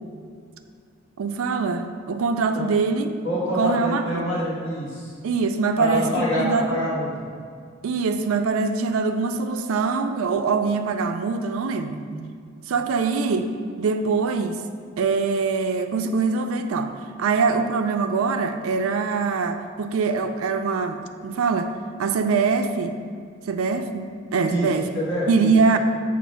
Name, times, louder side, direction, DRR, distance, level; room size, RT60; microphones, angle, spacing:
voice 1, 1.2-3.1 3.6-4.3 5.2-6.8 7.8-12.0 12.7-14.6 15.0-16.9 17.2-21.7 22.0-22.9 23.5-24.9 25.3-25.8, right 4 dB, 90° right, 7 dB, 0.4 m, -23 dB
voice 2, 3.2-5.1 5.8-7.3 12.1-12.2 24.4-24.7 24.9-25.5, equal, 65° left, -7 dB, 1.4 m, -26 dB
7.1 x 2.5 x 5.4 m, 2.2 s
head